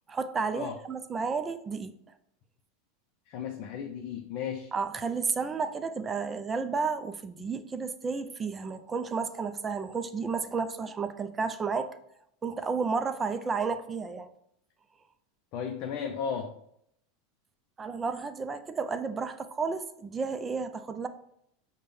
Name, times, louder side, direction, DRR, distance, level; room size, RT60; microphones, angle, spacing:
voice 1, 0.1-1.9 4.7-11.9 12.4-14.3 17.8-21.1, right 5 dB, 20° right, 10 dB, 0.4 m, -32 dB
voice 2, 3.3-4.7 15.5-16.5, left 7 dB, 55° left, 4 dB, 0.4 m, -35 dB
5.1 x 2.2 x 3.4 m, 0.74 s
hypercardioid pair, 105°, 0 cm